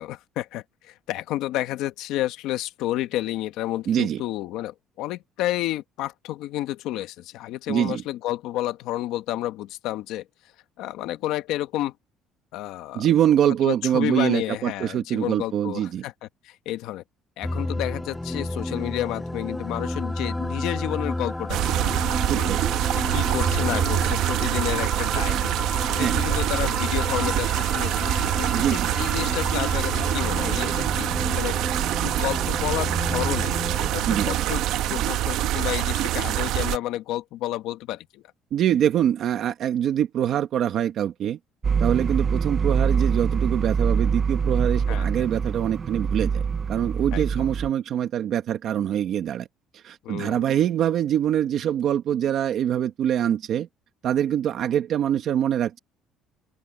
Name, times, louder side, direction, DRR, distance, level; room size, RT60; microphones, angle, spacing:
voice 1, 0.0-10.2 10.8-11.9 12.5-13.1 13.4-16.1 16.4-17.0 17.4-21.9 22.3-22.5 22.9-25.6 26.0-31.6 32.0-33.5 33.8-34.6 34.9-38.0 44.9-45.3 47.1-47.5 50.0-50.5, left 14 dB, 70° left, 1.2 m, -31 dB
voice 2, 3.9-4.2 7.7-8.0 12.9-16.0 22.3-22.6 26.0-26.2 28.5-28.9 34.1-34.3 38.5-41.4 41.8-46.4 46.7-49.5 49.7-53.7 54.0-55.8, right 10 dB, 45° right, 1.3 m, -24 dB
sound 1, 17.4-35.7, left 1 dB, 5° left, 1.3 m, -31 dB
sound 2, 21.5-36.8, right 14 dB, 65° right, 1.0 m, -25 dB
sound 3, 41.6-47.7, right 6 dB, 25° right, 0.4 m, -24 dB
open air
cardioid pair, 165°, 0 cm